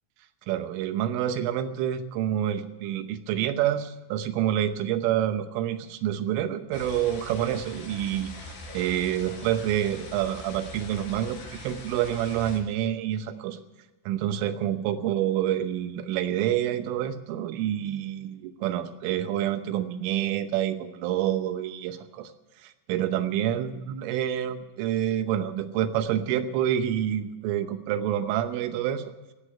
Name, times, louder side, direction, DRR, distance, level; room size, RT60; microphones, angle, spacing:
voice 1, 0.5-13.6 14.1-22.3 22.6-29.1, right 11 dB, 80° right, 9 dB, 3.4 m, -28 dB
sound 1, 6.7-12.6, left 2 dB, 60° left, 5.8 m, -42 dB
17.5 x 8.2 x 9.9 m, 1.1 s
omnidirectional pair, 5.8 m